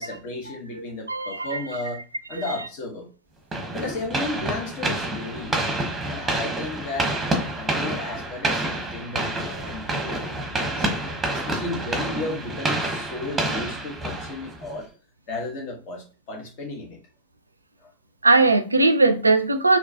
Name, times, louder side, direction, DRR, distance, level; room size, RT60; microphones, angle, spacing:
voice 1, 0.0-2.0 2.3-3.1 3.7-5.8 6.1-7.2 7.6-10.9 11.3-14.9 15.3-17.0 17.8-17.9, left 2 dB, 45° left, 1.3 m, -34 dB
voice 2, 1.1-1.6 18.2-19.8, right 3 dB, 80° right, 0.4 m, -19 dB
sound 1, 3.5-14.8, right 2 dB, 10° right, 1.0 m, -28 dB
4.3 x 2.9 x 2.9 m
figure-of-eight pair, 90°, 0 cm